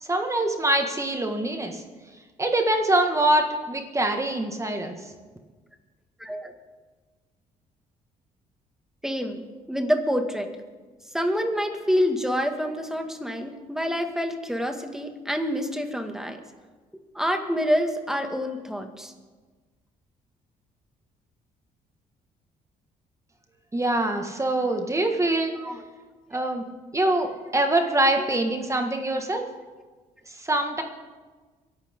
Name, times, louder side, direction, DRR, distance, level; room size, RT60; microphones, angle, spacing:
voice 1, 0.0-1.8 2.4-5.0 23.7-25.6 26.3-26.6 26.9-29.5 30.3-30.8, right 1 dB, 20° right, 4 dB, 1.8 m, -24 dB
voice 2, 6.2-6.5 9.0-9.4 9.7-10.5 11.1-16.4 17.1-19.1 25.6-25.8 26.3-26.5, equal, 5° right, 5 dB, 2.0 m, -27 dB
23.5 x 11.5 x 3.8 m, 1.4 s
cardioid pair, 80°, 15 cm